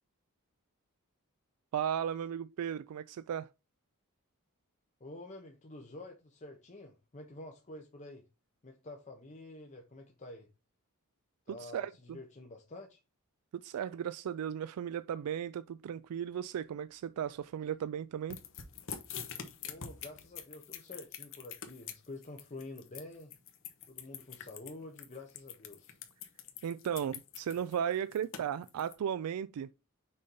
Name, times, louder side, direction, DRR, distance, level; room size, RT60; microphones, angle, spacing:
voice 1, 1.7-3.5 11.6-12.2 13.5-18.4 26.6-29.7, right 9 dB, 75° right, 0.3 m, -36 dB
voice 2, 5.0-8.2 8.6-10.5 11.5-13.0 19.6-23.3 23.9-26.0, left 2 dB, 35° left, 0.9 m, -48 dB
sound 1, 18.3-28.9, left 8 dB, 60° left, 1.1 m, -45 dB
6.5 x 2.8 x 5.4 m
head